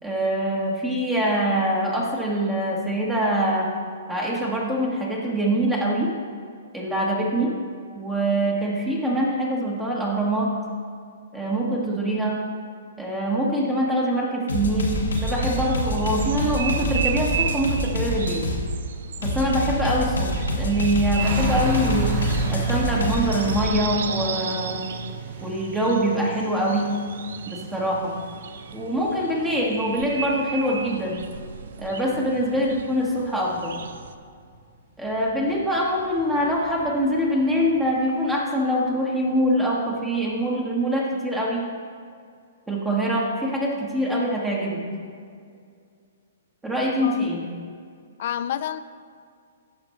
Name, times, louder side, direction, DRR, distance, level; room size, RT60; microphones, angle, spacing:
voice 1, 0.0-3.7 4.1-6.1 6.7-7.5 7.9-10.5 11.3-12.4 13.0-18.4 19.2-22.1 22.5-24.9 25.4-26.9 27.5-28.1 28.7-31.2 31.8-33.7 35.0-41.7 42.7-44.8 46.6-47.4, equal, 10° right, -4 dB, 1.4 m, -24 dB
sound 1, 14.5-18.6 19.2-23.6, equal, 85° left, 1.4 m, -26 dB
sound 2, 15.1-34.1, right 7 dB, 65° right, 0.4 m, -35 dB
sound 3, 21.2-33.2 33.5-38.4 38.9-39.0, right 2 dB, 50° right, 2.0 m, -35 dB
voice 2, 47.0-47.4 48.2-48.8, left 10 dB, 55° left, 12 dB, 0.4 m, -29 dB
14.0 x 5.2 x 3.2 m, 2.2 s
hypercardioid pair, 125°, 0 cm